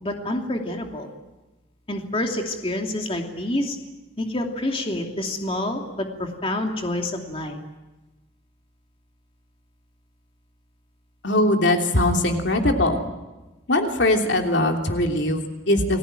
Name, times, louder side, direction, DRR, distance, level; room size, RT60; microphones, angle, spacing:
voice 1, 0.0-1.1 1.9-3.8 4.2-7.6, left 1 dB, 30° left, 2 dB, 2.7 m, -27 dB
voice 2, 11.2-13.0 13.7-16.0, left 1 dB, 65° left, 3 dB, 3.1 m, -21 dB
30.0 x 21.0 x 9.1 m, 1.1 s
head